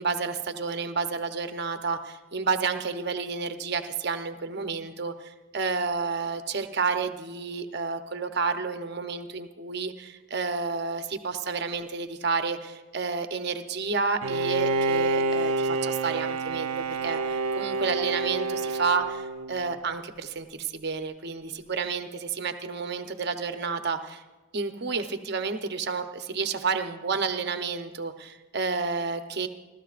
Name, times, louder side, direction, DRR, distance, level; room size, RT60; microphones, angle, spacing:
voice 1, 0.0-24.2 24.5-29.5, right 4 dB, 50° right, 7 dB, 0.8 m, -30 dB
Bowed string instrument, 14.2-19.8, right 3 dB, 85° right, 0.6 m, -28 dB
29.0 x 13.0 x 2.5 m, 1.2 s
head